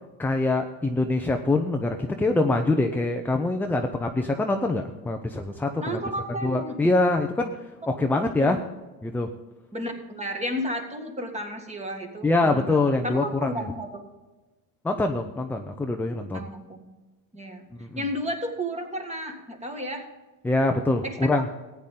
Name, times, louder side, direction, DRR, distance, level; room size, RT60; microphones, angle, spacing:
voice 1, 0.2-6.0 6.4-8.6 9.0-9.3 12.2-13.7 14.8-16.5 17.8-18.0 20.4-21.5, left 2 dB, 5° left, 4 dB, 0.5 m, -24 dB
voice 2, 5.8-6.7 8.0-8.6 9.7-14.0 16.3-16.9 17.3-17.6 18.0-20.1 21.0-21.3, equal, 15° right, 4 dB, 1.9 m, -33 dB
15.0 x 9.4 x 3.7 m, 1.2 s
supercardioid pair, 120°, 46 cm